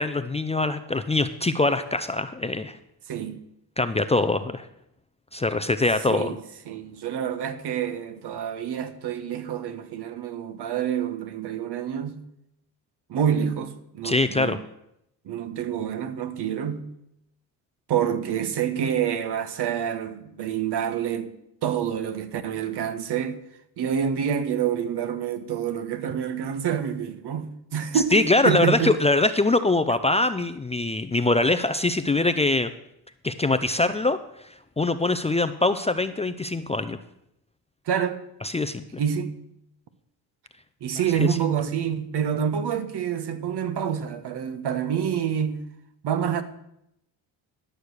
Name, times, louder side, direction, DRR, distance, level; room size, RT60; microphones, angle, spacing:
voice 1, 0.0-2.7 3.8-4.7 5.3-6.4 14.0-14.6 27.9-32.7 33.2-34.2 34.8-37.0 38.4-39.0 41.2-41.4, left 2 dB, 15° left, 0.5 m, -23 dB
voice 2, 3.1-3.4 6.1-6.4 6.7-12.2 13.1-14.6 15.2-16.9 17.9-21.3 21.6-23.4 23.8-29.0 37.9-38.2 39.0-39.4 40.8-45.7 46.0-46.4, right 8 dB, 60° right, 1.2 m, -27 dB
12.0 x 6.6 x 6.5 m
supercardioid pair, 70°, 46 cm